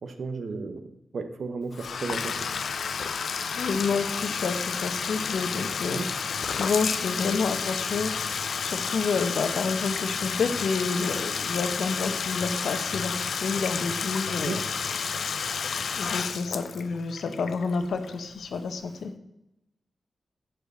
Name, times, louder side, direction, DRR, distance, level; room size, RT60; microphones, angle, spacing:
voice 1, 0.0-2.5 5.9-6.1 14.4-14.6, right 4 dB, 70° right, 9 dB, 1.0 m, -34 dB
Bathtub (filling or washing), 1.7-18.5, left 6 dB, 75° left, 0.4 m, -31 dB
voice 2, 3.6-6.0 6.5-8.1 8.6-14.6 16.0-19.1, left 4 dB, 90° left, 8 dB, 1.0 m, -29 dB
11.0 x 4.9 x 6.8 m, 0.91 s
cardioid pair, 80°, 0 cm